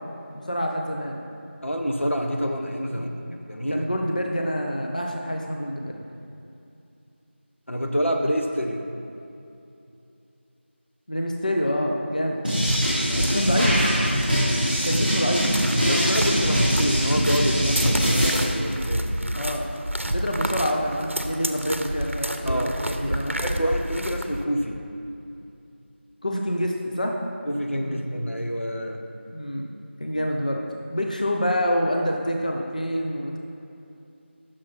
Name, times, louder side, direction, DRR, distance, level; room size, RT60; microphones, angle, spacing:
voice 1, 0.3-1.2 2.9-3.3 3.7-6.0 11.1-12.4 13.2-13.9 14.8-15.5 19.3-19.7 20.0-23.4 26.2-27.2 27.8-28.0 29.3-29.7 30.0-30.7 30.9-33.4, equal, 40° left, 1 dB, 0.5 m, -27 dB
voice 2, 1.6-3.9 7.7-8.9 13.1-13.3 15.9-19.2 22.5-22.8 23.1-24.8 27.5-29.0, equal, 85° left, 3 dB, 0.9 m, -27 dB
sound 1, 12.4-18.4, equal, 5° left, 2.0 m, -22 dB
sound 2, 12.6-24.4, right 1 dB, 85° right, 0.6 m, -30 dB
8.3 x 6.2 x 4.2 m, 2.7 s
figure-of-eight pair, 175°, 7 cm